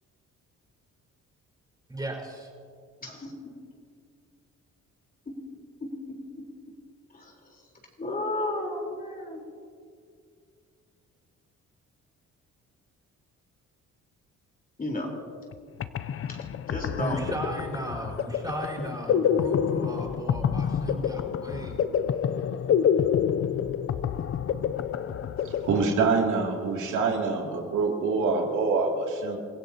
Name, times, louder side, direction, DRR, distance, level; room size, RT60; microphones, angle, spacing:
voice 1, 1.9-2.5 17.0-21.9, right 1 dB, 15° right, -2 dB, 4.8 m, -35 dB
voice 2, 3.0-3.3 5.3-5.4 5.8-6.5 7.1-7.7 8.0-9.4 14.8-15.1 16.3-17.2, left 2 dB, 30° left, 0 dB, 4.0 m, -34 dB
sound 1, 15.5-15.6 15.8-26.4, left 8 dB, 45° left, 0.6 m, -28 dB
voice 3, 25.4-29.4, right 4 dB, 75° right, 0 dB, 2.7 m, -25 dB
30.0 x 16.0 x 2.9 m, 2.3 s
cardioid pair, 90°, 30 cm